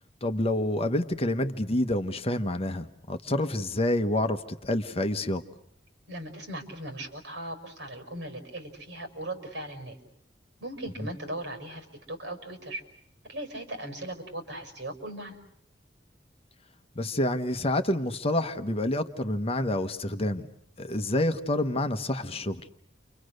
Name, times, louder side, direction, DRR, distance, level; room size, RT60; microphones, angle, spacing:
voice 1, 0.2-5.4 17.0-20.5 20.8-22.6, left 1 dB, 35° left, 8 dB, 1.1 m, -28 dB
voice 2, 6.1-10.0 10.6-12.8 13.3-15.4, right 1 dB, 65° right, 5 dB, 5.7 m, -38 dB
30.0 x 25.5 x 6.6 m, 0.70 s
head